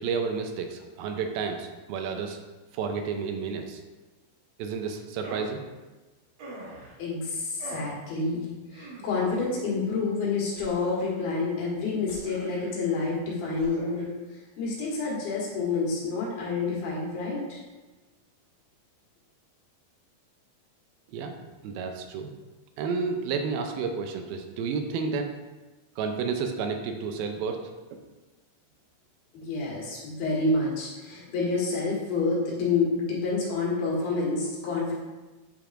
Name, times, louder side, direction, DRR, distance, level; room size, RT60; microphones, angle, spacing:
voice 1, 0.0-2.4 2.7-3.8 4.6-5.6 21.1-21.3 21.6-22.3 22.8-25.3 26.0-27.6, right 5 dB, 85° right, 5 dB, 2.4 m, -31 dB
sound 1, 5.2-5.6 6.4-7.0 7.6-8.0 8.7-9.4 10.5-11.2 12.1-12.7 13.5-14.0, right 1 dB, 60° right, 1.9 m, -43 dB
voice 2, 7.0-17.6 29.3-34.9, left 3 dB, 80° left, -5 dB, 3.5 m, -28 dB
8.6 x 5.2 x 2.5 m, 1.2 s
omnidirectional pair, 4.3 m